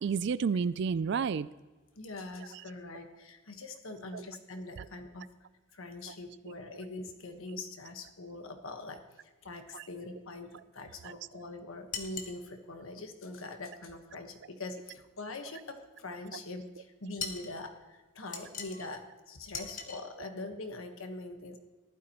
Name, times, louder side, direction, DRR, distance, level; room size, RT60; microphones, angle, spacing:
voice 1, 0.0-1.5 2.5-2.6 4.1-4.2 4.8-4.9 6.1-6.2 6.5-6.6 9.7-9.8 11.0-11.2, right 6 dB, 55° right, 17 dB, 0.3 m, -31 dB
voice 2, 1.9-5.3 5.7-9.0 9.4-21.6, left 2 dB, 70° left, 5 dB, 1.3 m, -43 dB
sound 1, 11.9-12.4 17.2-17.5 18.3-18.9 19.5-20.0, left 5 dB, 35° left, 1.2 m, -39 dB
14.5 x 11.5 x 3.0 m, 1.3 s
head